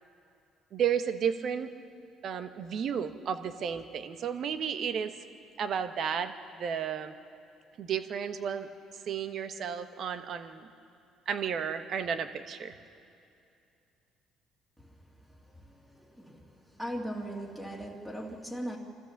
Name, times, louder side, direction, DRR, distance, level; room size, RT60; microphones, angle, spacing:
voice 1, 0.7-1.7 2.2-5.1 5.6-7.1 7.8-8.7 9.1-10.7 11.3-12.7, right 7 dB, 60° right, 9 dB, 1.2 m, -32 dB
voice 2, 15.9-16.4 16.7-18.8, equal, 5° right, 0 dB, 2.4 m, -38 dB
26.0 x 14.5 x 7.3 m, 2.5 s
cardioid pair, 90°, 0 cm